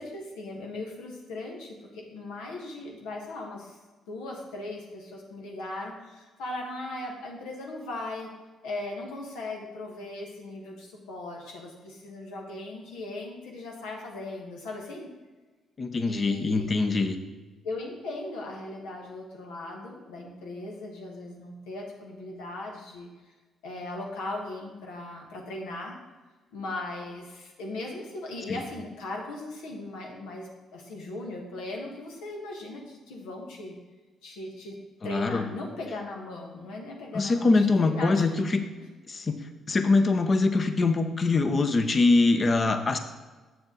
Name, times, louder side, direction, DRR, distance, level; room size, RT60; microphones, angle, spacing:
voice 1, 0.0-3.8 4.1-8.3 8.6-15.1 16.0-16.7 17.6-23.1 23.6-26.0 26.5-33.7 34.2-38.2 38.6-38.7, left 2 dB, 85° left, -1 dB, 1.6 m, -38 dB
voice 2, 15.8-17.2 28.5-28.7 35.0-35.5 37.1-38.6 39.1-43.0, left 3 dB, 40° left, 8 dB, 0.9 m, -23 dB
7.8 x 7.0 x 4.0 m, 1.3 s
supercardioid pair, 60°, 0 cm